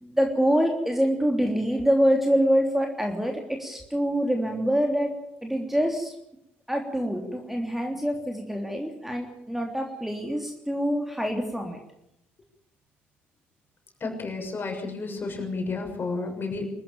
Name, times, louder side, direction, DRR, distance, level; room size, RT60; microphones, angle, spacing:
voice 1, 0.0-5.1 5.4-6.1 6.7-11.8, equal, 5° right, 2 dB, 3.3 m, -25 dB
voice 2, 14.0-16.7, left 3 dB, 35° left, 3 dB, 6.7 m, -31 dB
24.5 x 14.5 x 8.9 m, 0.81 s
figure-of-eight pair, 50°, 6 cm